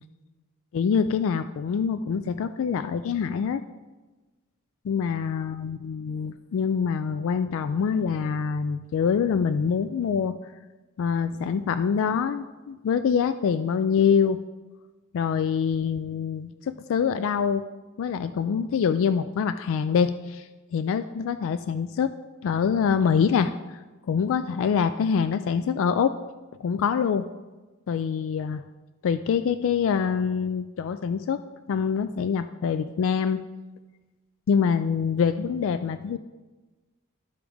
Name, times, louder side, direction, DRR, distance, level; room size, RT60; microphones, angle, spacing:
voice 1, 0.7-3.6 4.8-10.4 11.0-14.4 15.1-17.6 18.0-22.1 22.4-23.5 24.1-26.1 26.6-27.3 27.9-28.6 29.0-31.4 31.7-33.4 34.5-36.2, left 6 dB, 65° left, 11 dB, 0.3 m, -25 dB
13.0 x 4.9 x 3.4 m, 1.2 s
head